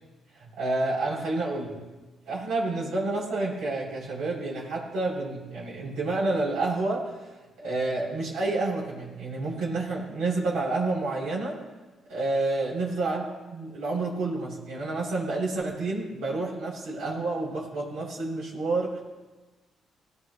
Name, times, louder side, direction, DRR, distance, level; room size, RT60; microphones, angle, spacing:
voice 1, 0.3-1.8 2.3-7.3 7.6-11.6 12.1-19.0, right 2 dB, 85° right, -7 dB, 7.2 m, -29 dB
21.0 x 18.5 x 3.2 m, 1.2 s
cardioid pair, 90°, 0 cm